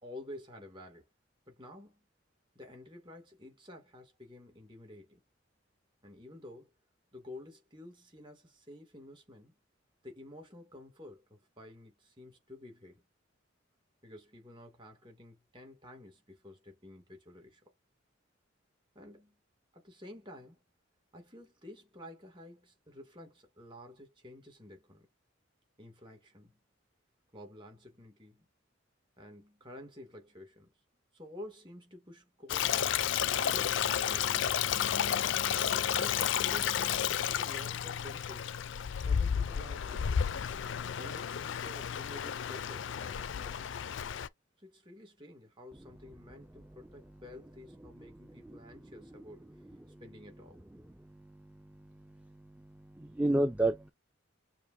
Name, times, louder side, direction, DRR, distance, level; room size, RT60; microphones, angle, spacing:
voice 1, 0.0-1.1 1.5-2.0 2.5-5.2 6.0-6.7 7.1-9.5 10.0-13.0 14.0-17.6 18.9-19.4 19.7-20.6 21.1-25.1 25.8-26.6 27.3-28.5 29.2-30.7 31.1-32.8 33.3-34.4 35.7-38.6 39.0-40.2 41.0-43.7 44.6-49.5 50.0-50.6, left 1 dB, 25° right, 2.4 m, -50 dB
Stream, 32.5-44.3, left 9 dB, 65° left, 0.4 m, -32 dB
voice 2, 51.1-51.5 52.2-52.3 52.6-53.9, right 1 dB, 5° right, 0.4 m, -32 dB
6.8 x 2.7 x 2.7 m
head